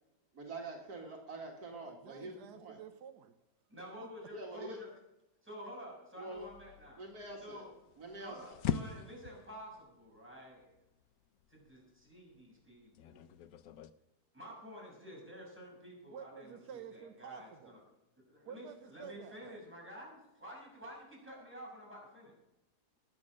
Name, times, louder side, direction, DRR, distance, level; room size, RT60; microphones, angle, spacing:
voice 1, 0.3-2.8 4.3-4.8 6.2-6.4 7.0-7.6 8.0-8.4, right 2 dB, 65° right, 0 dB, 2.2 m, -45 dB
voice 2, 1.8-3.4 4.0-4.1 16.1-17.7 18.5-19.6, right 8 dB, 80° right, 9 dB, 1.4 m, -51 dB
voice 3, 3.7-4.9 5.4-7.0 7.4-7.7 8.2-10.7 11.5-13.2 14.3-17.8 18.3-22.3, equal, 5° right, -3 dB, 6.4 m, -50 dB
sound 1, 6.4-13.9, left 9 dB, 70° left, 1.1 m, -43 dB
19.5 x 7.7 x 6.5 m, 0.94 s
omnidirectional pair, 1.7 m